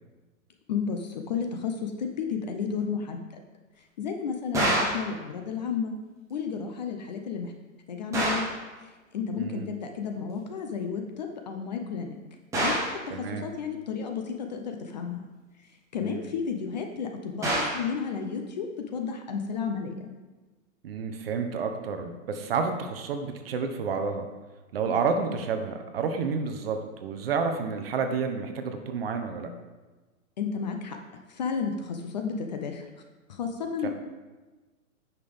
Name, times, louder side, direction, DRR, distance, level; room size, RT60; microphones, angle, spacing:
voice 1, 0.7-3.2 4.0-5.9 6.3-7.5 7.9-8.5 8.8-12.2 12.6-15.2 15.9-18.7 18.9-20.1 30.4-31.0 31.3-32.8 33.3-33.9, left 6 dB, 30° left, 4 dB, 0.6 m, -32 dB
sound 1, 4.5-5.1 8.1-8.6 12.5-13.0 17.4-17.9, right 1 dB, 5° right, 1.2 m, -26 dB
voice 2, 9.4-9.7 13.1-13.5 16.0-16.2 20.8-24.2 24.7-29.5 33.8-33.9, right 5 dB, 45° right, 6 dB, 0.9 m, -30 dB
9.3 x 5.9 x 3.4 m, 1.2 s
hypercardioid pair, 155°, 42 cm